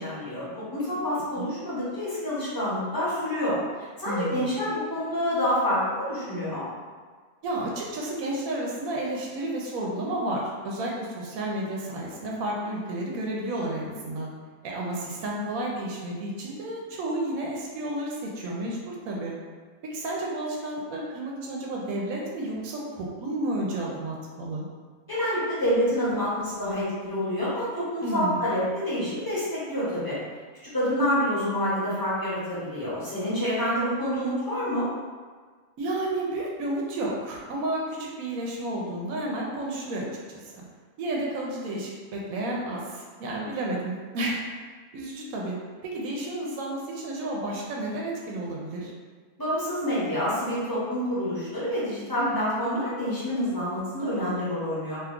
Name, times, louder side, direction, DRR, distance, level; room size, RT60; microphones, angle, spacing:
voice 1, 0.0-3.6 4.0-6.6 25.1-30.2 30.6-34.9 49.4-55.0, equal, 20° left, -10 dB, 0.9 m, -27 dB
voice 2, 4.1-4.5 7.4-14.3 14.6-19.3 19.8-24.7 28.0-28.5 35.8-40.6 41.0-44.4 44.9-45.6 45.8-48.9 52.2-52.5, right 1 dB, 85° right, -2 dB, 1.0 m, -31 dB
2.8 x 2.3 x 3.6 m, 1.5 s
omnidirectional pair, 1.4 m